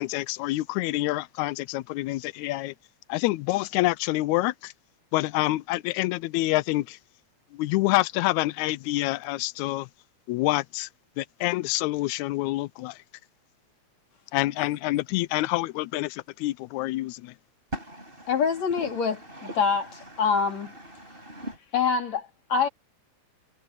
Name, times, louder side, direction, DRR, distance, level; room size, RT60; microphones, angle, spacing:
voice 1, 0.0-2.7 3.1-4.7 5.1-7.0 7.5-9.9 10.3-10.9 11.2-13.0 14.3-17.3, left 18 dB, 85° left, 1.9 m, -27 dB
voice 2, 17.7-21.6, equal, 15° right, 8.1 m, -41 dB
voice 3, 18.3-19.1 19.6-19.8 20.2-20.7 21.7-22.7, left 6 dB, 65° left, 4.5 m, -24 dB
omnidirectional pair, 3.3 m